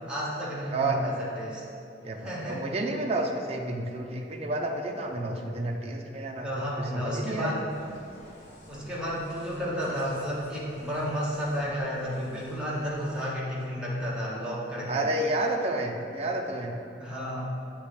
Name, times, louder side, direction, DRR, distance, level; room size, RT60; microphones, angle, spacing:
voice 1, 0.0-1.6 2.2-2.7 6.4-7.7 8.7-15.1 17.0-17.5, equal, 5° right, -7 dB, 1.4 m, -32 dB
voice 2, 0.7-1.1 2.0-7.6 14.9-16.8, right 2 dB, 35° right, 1 dB, 0.6 m, -30 dB
Insect, 7.7-13.2, equal, 45° left, 1.4 m, -51 dB
8.3 x 3.0 x 5.0 m, 2.7 s
head